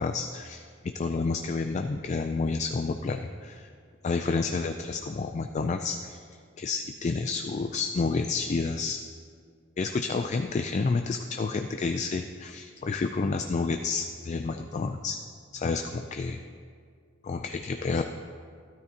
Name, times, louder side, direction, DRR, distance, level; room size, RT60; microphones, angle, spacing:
voice 1, 0.0-3.7 4.0-6.2 6.6-9.0 9.8-15.2 15.5-16.4 17.2-18.0, left 4 dB, 35° left, 6 dB, 0.3 m, -30 dB
13.5 x 12.5 x 2.9 m, 2.1 s
head